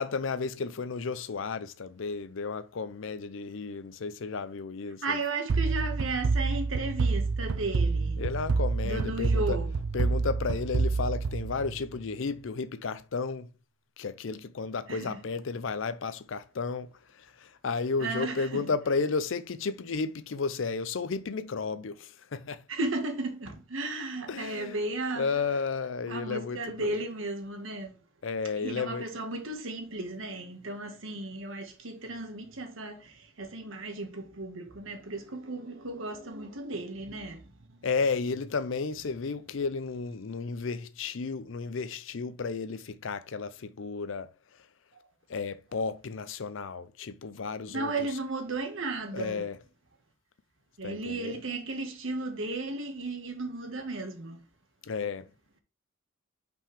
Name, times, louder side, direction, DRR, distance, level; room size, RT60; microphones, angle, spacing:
voice 1, 0.0-5.2 8.2-9.6 9.9-13.5 14.0-16.9 17.4-22.6 24.3-24.8 25.2-27.0 28.2-29.0 37.8-44.3 45.3-47.9 49.1-49.6 50.8-51.3 54.8-55.3, left 4 dB, 65° left, 0.5 m, -33 dB
voice 2, 5.0-8.2 8.8-9.8 14.9-15.2 18.0-18.7 22.7-25.4 26.1-28.0 28.6-37.9 44.9-45.0 47.7-49.5 50.8-54.4, right 2 dB, 70° right, 1.5 m, -35 dB
sound 1, 5.5-12.1, right 4 dB, 85° right, 0.4 m, -28 dB
5.7 x 5.4 x 3.2 m
head